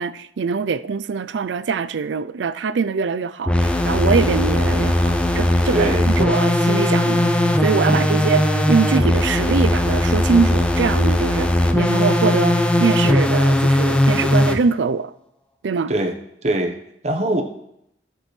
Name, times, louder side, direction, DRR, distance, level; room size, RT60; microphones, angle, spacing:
voice 1, 0.0-5.9 6.2-7.3 7.6-15.1 15.6-15.9, right 5 dB, 85° right, 0.4 m, -23 dB
sound 1, 3.5-14.6, left 1 dB, 5° left, 0.5 m, -18 dB
voice 2, 5.7-6.1 7.8-8.1 15.9-16.1 16.4-16.8 17.0-17.4, right 1 dB, 40° right, 1.0 m, -22 dB
16.5 x 6.2 x 3.2 m
head